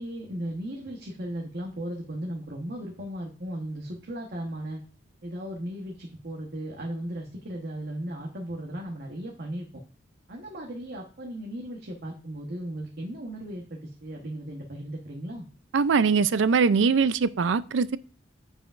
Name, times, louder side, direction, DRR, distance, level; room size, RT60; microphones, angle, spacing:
voice 1, 0.0-4.8 5.2-9.7 10.3-15.5, right 1 dB, 55° right, 1.2 m, -36 dB
voice 2, 15.7-18.0, right 5 dB, 70° right, 0.4 m, -22 dB
14.5 x 4.9 x 2.5 m
head